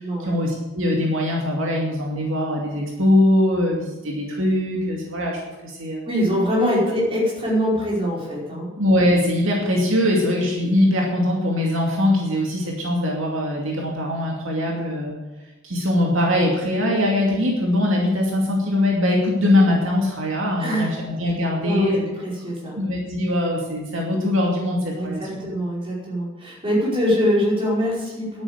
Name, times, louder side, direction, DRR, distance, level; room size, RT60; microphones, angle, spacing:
voice 1, 0.2-6.0 8.8-15.2 15.6-22.1 22.8-25.4, left 1 dB, 70° right, -1 dB, 2.5 m, -21 dB
voice 2, 6.0-8.7 16.8-17.0 20.6-20.9 21.6-22.0 22.2-22.7 25.0-28.4, equal, 25° right, -5 dB, 5.0 m, -23 dB
11.0 x 9.1 x 8.2 m, 1.1 s
head